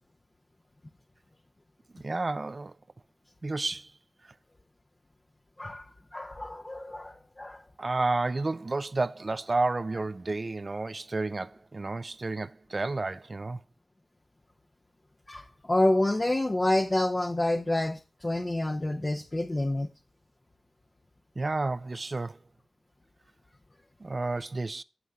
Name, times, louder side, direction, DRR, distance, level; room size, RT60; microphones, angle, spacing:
voice 1, 1.9-2.7 3.4-3.9 7.8-13.6 21.4-22.4 24.0-24.8, right 3 dB, 45° right, 0.4 m, -31 dB
voice 2, 5.6-7.6 15.3-19.9, left 1 dB, 30° left, 0.7 m, -28 dB
15.5 x 5.5 x 2.4 m
cardioid pair, 55°, 0 cm